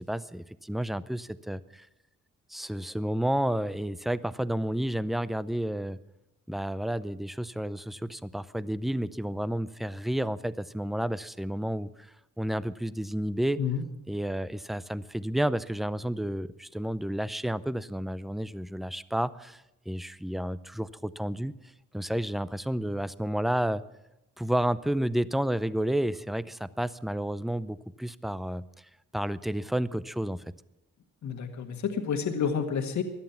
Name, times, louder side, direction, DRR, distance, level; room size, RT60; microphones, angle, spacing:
voice 1, 0.0-1.9 2.5-6.0 6.5-13.6 14.1-21.5 21.9-23.8 24.4-28.9 29.1-30.4, right 1 dB, ahead, 16 dB, 0.5 m, -31 dB
voice 2, 31.2-33.0, left 7 dB, 65° left, 5 dB, 1.7 m, -29 dB
17.0 x 11.5 x 5.8 m, 0.91 s
cardioid pair, 80°, 31 cm